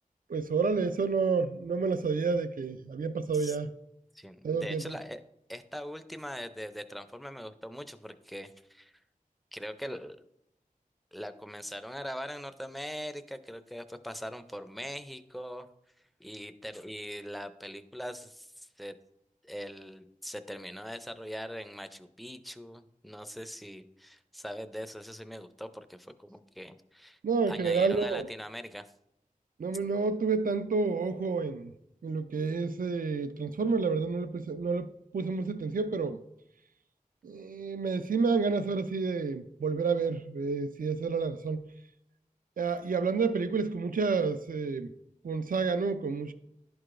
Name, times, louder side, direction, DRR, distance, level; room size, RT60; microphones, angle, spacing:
voice 1, 0.3-3.7 4.4-5.0 27.2-28.3 29.6-31.7 32.0-36.2 37.2-41.6 42.6-44.9 45.2-46.3, right 4 dB, 80° right, 0.4 m, -29 dB
voice 2, 4.1-5.2 5.5-9.0 9.5-10.2 11.1-15.7 16.2-18.9 19.4-27.2 27.5-28.9, equal, ahead, 0.4 m, -41 dB
11.0 x 4.8 x 2.5 m
wide cardioid pair, 50°, 14 cm